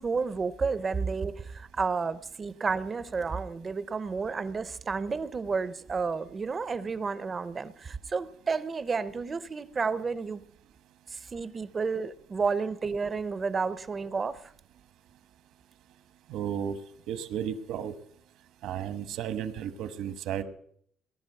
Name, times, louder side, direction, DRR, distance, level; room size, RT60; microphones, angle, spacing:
voice 1, 0.0-10.4 11.1-14.5, right 4 dB, 20° right, 16 dB, 0.6 m, -31 dB
voice 2, 16.3-16.8 17.1-17.9 18.6-20.4, right 9 dB, 70° right, 12 dB, 1.2 m, -33 dB
19.0 x 11.5 x 6.6 m, 0.64 s
cardioid pair, 180°, 0 cm